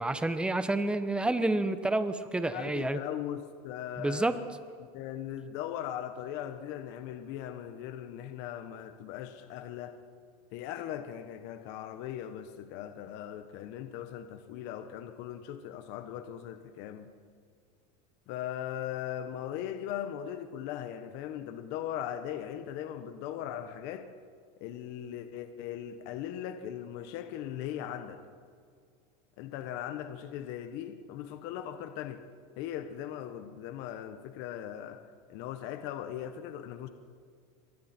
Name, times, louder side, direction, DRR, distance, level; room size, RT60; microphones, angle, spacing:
voice 1, 0.0-3.0 4.0-4.4, right 2 dB, 5° right, 10 dB, 1.0 m, -29 dB
voice 2, 2.5-4.3 4.9-10.0 10.5-17.1 18.3-24.1 24.6-28.2 29.4-32.2 32.6-35.0 35.3-36.9, left 10 dB, 55° left, 8 dB, 1.3 m, -39 dB
27.5 x 23.0 x 4.5 m, 2.1 s
supercardioid pair, 130°, 21 cm